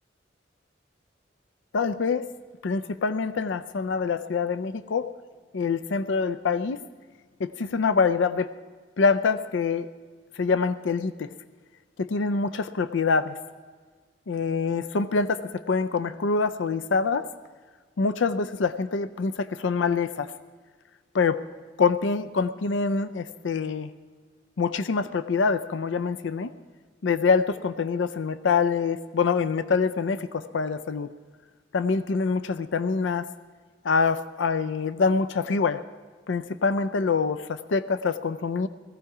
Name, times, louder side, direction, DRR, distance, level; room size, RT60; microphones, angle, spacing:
voice 1, 1.7-2.3 2.6-5.1 5.5-6.8 7.4-8.5 9.0-9.9 10.4-11.3 12.0-13.3 14.3-17.3 18.0-20.3 21.1-21.4 21.8-23.9 24.6-26.5 27.0-31.1 31.7-33.3 33.8-35.8 36.3-38.7, left 5 dB, 80° left, 12 dB, 0.5 m, -25 dB
18.5 x 15.0 x 4.8 m, 1.5 s
head